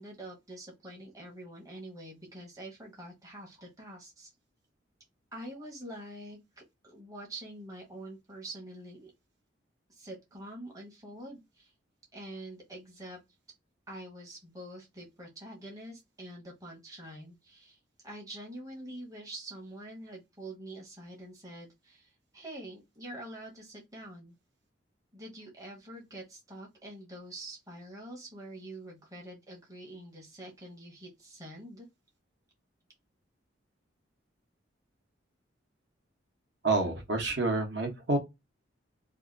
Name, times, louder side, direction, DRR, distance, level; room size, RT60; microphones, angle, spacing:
voice 1, 0.0-4.3 5.3-9.1 9.9-11.7 12.1-13.2 13.9-24.4 25.1-31.9, right 1 dB, 20° right, 0.8 m, -46 dB
voice 2, 36.6-38.2, right 3 dB, 65° right, 1.0 m, -28 dB
2.7 x 2.5 x 3.7 m
head